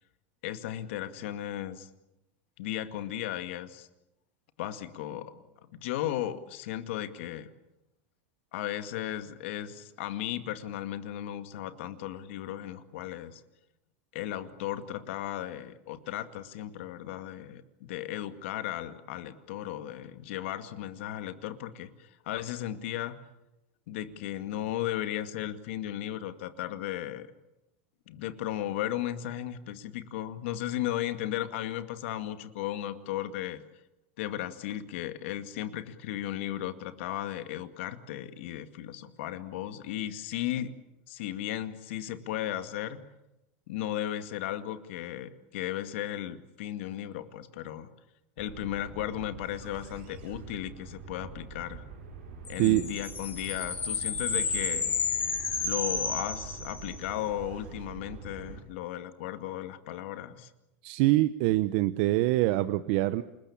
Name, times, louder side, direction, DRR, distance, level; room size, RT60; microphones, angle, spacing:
voice 1, 0.4-1.9 2.6-3.9 4.6-5.4 5.8-7.5 8.5-13.4 14.1-23.1 23.9-27.3 28.1-33.6 34.2-40.7 41.1-43.0 43.7-47.9 48.4-51.8 52.5-55.0 55.6-60.5, left 12 dB, 75° left, 9 dB, 2.2 m, -35 dB
sound 1, 48.4-58.6, right 5 dB, 80° right, 7.7 m, -45 dB
sound 2, 52.5-57.1, left 5 dB, 25° left, 6.0 m, -32 dB
voice 2, 60.8-63.2, right 17 dB, 65° right, 12 dB, 0.9 m, -24 dB
29.0 x 20.5 x 8.8 m, 0.94 s
supercardioid pair, 125°, 7 cm